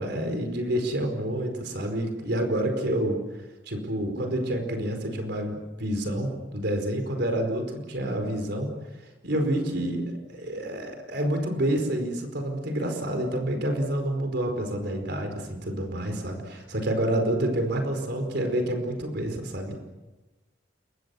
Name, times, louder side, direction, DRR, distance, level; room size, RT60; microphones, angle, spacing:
voice 1, 0.0-3.2 3.6-8.7 9.2-10.0 10.3-19.8, right 1 dB, 60° right, 5 dB, 4.9 m, -28 dB
29.0 x 23.0 x 7.1 m, 1.1 s
head